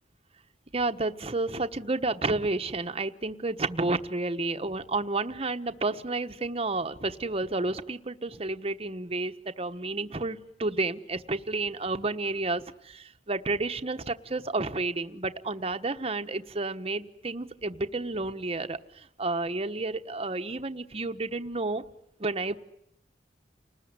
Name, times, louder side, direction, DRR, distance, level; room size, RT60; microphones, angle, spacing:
voice 1, 0.7-21.8 22.2-22.6, right 3 dB, 35° right, 8 dB, 1.2 m, -31 dB
30.0 x 20.0 x 9.7 m, 0.76 s
head